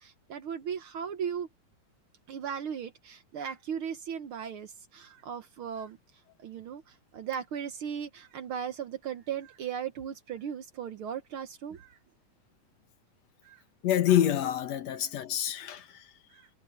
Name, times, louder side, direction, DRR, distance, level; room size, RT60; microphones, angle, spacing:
voice 1, 0.0-1.5 2.3-6.0 6.4-12.0 13.4-13.6 16.3-16.5, right 8 dB, 65° right, 1.3 m, -37 dB
voice 2, 13.8-16.1, left 11 dB, 65° left, 2.3 m, -27 dB
omnidirectional pair, 3.6 m